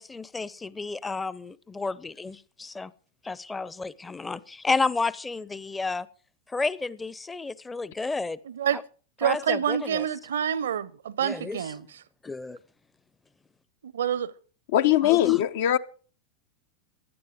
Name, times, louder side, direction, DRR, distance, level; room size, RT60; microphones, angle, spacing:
voice 1, 0.0-2.9 3.3-6.1 6.5-8.4 8.7-8.8 9.2-10.0 11.2-11.6 12.2-12.6 15.0-15.4, left 3 dB, 10° left, 0.7 m, -31 dB
voice 2, 8.4-8.8 9.2-12.0 13.8-14.3, right 9 dB, 65° right, 0.7 m, -27 dB
voice 3, 14.7-15.8, left 13 dB, 55° left, 0.7 m, -21 dB
16.5 x 12.0 x 5.0 m
figure-of-eight pair, 90°, 0 cm